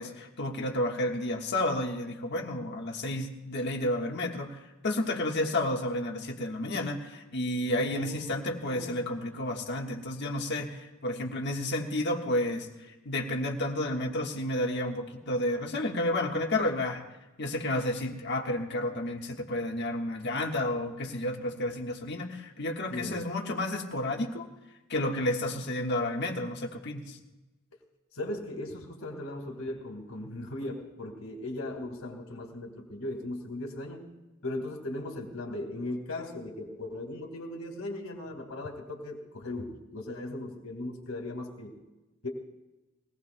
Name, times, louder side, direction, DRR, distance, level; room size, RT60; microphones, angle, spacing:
voice 1, 0.0-12.7 13.0-17.0 17.4-24.5 24.9-27.2, left 1 dB, 55° left, 2 dB, 1.4 m, -31 dB
voice 2, 7.6-8.3 8.7-8.9 22.9-23.2 28.1-34.0 34.4-41.7 42.2-42.3, left 1 dB, 80° left, 2 dB, 2.0 m, -38 dB
22.0 x 18.0 x 2.2 m, 1.1 s
head